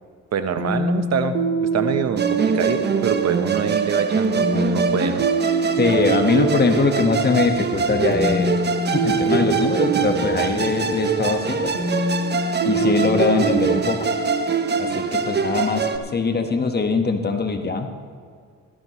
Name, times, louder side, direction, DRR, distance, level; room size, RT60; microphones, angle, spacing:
voice 1, 0.3-1.3 1.7-5.2, right 7 dB, 60° right, 10 dB, 1.0 m, -25 dB
sound 1, 0.6-16.2, right 3 dB, 85° right, 1.6 m, -26 dB
Musical instrument, 2.2-16.0, right 5 dB, 35° right, 1.0 m, -24 dB
voice 2, 5.8-8.6 8.9-11.7 12.6-14.1 14.8-17.9, left 4 dB, 35° left, 5 dB, 1.4 m, -21 dB
17.0 x 14.0 x 3.1 m, 2.1 s
cardioid pair, 90°, 30 cm